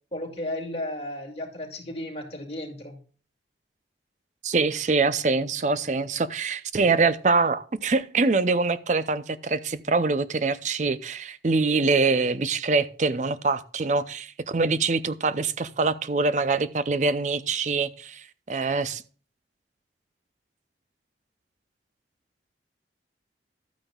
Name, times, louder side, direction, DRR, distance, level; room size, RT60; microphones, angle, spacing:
voice 1, 0.1-3.0, left 1 dB, 35° left, 2.3 m, -34 dB
voice 2, 4.4-19.0, right 3 dB, 40° right, 0.5 m, -24 dB
12.5 x 8.9 x 2.3 m
head